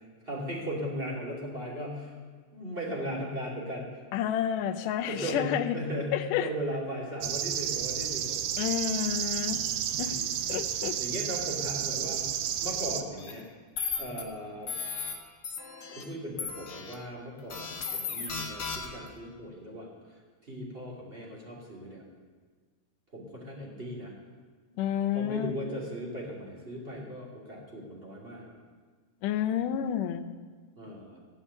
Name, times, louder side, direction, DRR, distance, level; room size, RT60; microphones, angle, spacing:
voice 1, 0.2-2.1 2.5-3.9 5.1-8.4 10.0-10.5 11.0-12.4 12.6-13.4 14.0-14.7 15.9-20.0 20.4-22.0 23.1-24.1 25.1-28.6 30.8-31.2, equal, 20° right, -3 dB, 2.4 m, -37 dB
voice 2, 4.1-5.8 6.1-6.5 8.6-9.6 10.0-10.2 10.5-11.0 24.8-25.5 29.2-30.2, left 10 dB, 80° left, 8 dB, 2.2 m, -30 dB
sound 1, 7.2-13.0, right 10 dB, 75° right, 1.9 m, -31 dB
sound 2, 13.2-13.3 13.8-14.2 14.7-15.1 15.4-16.0 16.4-16.9 17.5-19.1, left 6 dB, 45° left, 1.4 m, -35 dB
16.0 x 5.6 x 9.7 m, 1.5 s
omnidirectional pair, 3.8 m